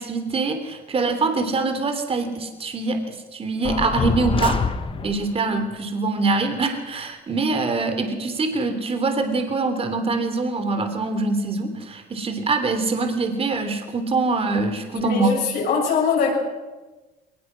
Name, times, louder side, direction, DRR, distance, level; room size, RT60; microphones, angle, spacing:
voice 1, 0.0-4.6 5.0-15.4, right 3 dB, 35° right, 7 dB, 3.2 m, -24 dB
sound 1, 3.6-5.3, left 5 dB, 30° left, 1.5 m, -25 dB
voice 2, 14.9-16.3, left 5 dB, 75° left, -4 dB, 7.0 m, -22 dB
21.5 x 20.0 x 6.3 m, 1.2 s
cardioid pair, 110°, 17 cm